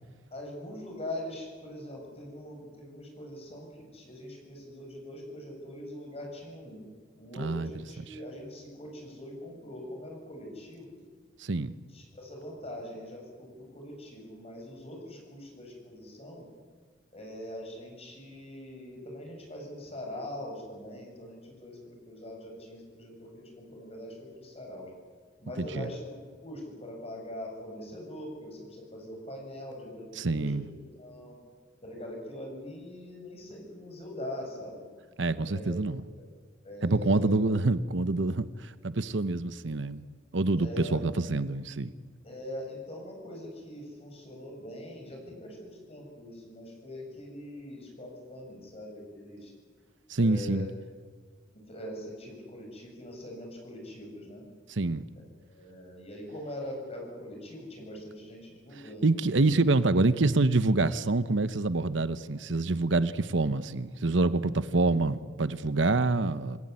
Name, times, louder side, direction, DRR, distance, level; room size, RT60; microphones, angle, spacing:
voice 1, 0.3-6.8 7.2-11.0 11.9-16.5 17.1-24.9 25.4-26.1 26.4-31.4 31.8-34.8 35.5-35.8 36.6-37.4 40.6-41.0 42.2-49.5 50.2-50.7 51.7-54.4 55.5-59.4, left 1 dB, 35° left, 7.7 m, -42 dB
voice 2, 7.4-7.7 11.4-11.7 25.6-25.9 30.2-30.7 35.2-36.0 36.8-40.0 40.3-41.9 50.1-50.7 54.7-55.0 59.0-66.6, right 2 dB, 75° right, 1.0 m, -26 dB
27.0 x 18.0 x 9.7 m
head